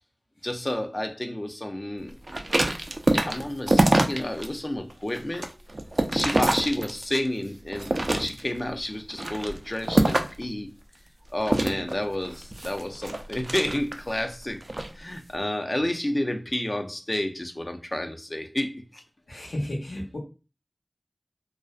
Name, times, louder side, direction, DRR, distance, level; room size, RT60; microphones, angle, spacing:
voice 1, 0.4-2.2 3.1-5.5 6.1-10.7 11.3-14.6 15.0-19.0, left 1 dB, 30° left, 0.4 m, -30 dB
sound 1, 2.3-4.5 4.9-7.3 7.7-8.6 9.1-10.5 11.4-14.1 14.6-14.9, right 1 dB, 55° right, 0.3 m, -25 dB
voice 2, 19.3-20.2, left 1 dB, 85° left, 0.9 m, -32 dB
2.5 x 2.1 x 2.3 m
wide cardioid pair, 50°, 0 cm